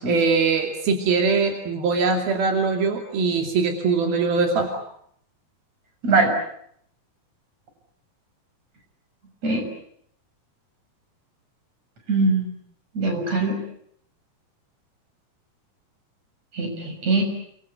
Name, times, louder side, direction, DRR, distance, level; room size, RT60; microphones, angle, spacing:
voice 1, 0.1-4.7, right 4 dB, 85° right, 3 dB, 4.6 m, -22 dB
voice 2, 12.1-12.5 12.9-13.6 16.5-17.2, right 3 dB, 45° right, 4 dB, 7.9 m, -22 dB
29.5 x 23.5 x 8.2 m, 0.68 s
omnidirectional pair, 4.2 m